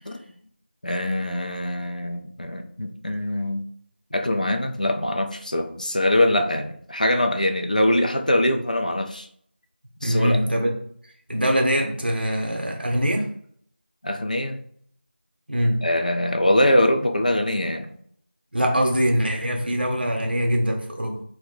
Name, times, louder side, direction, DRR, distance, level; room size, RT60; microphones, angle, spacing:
voice 1, 0.8-3.7 4.1-9.3 10.0-10.6 14.0-14.6 15.8-17.9, left 1 dB, 45° left, 4 dB, 0.4 m, -23 dB
voice 2, 10.0-10.7 11.3-13.3 15.5-15.8 18.5-21.2, equal, 55° right, 1 dB, 0.7 m, -23 dB
2.6 x 2.1 x 3.9 m, 0.63 s
figure-of-eight pair, 180°, 6 cm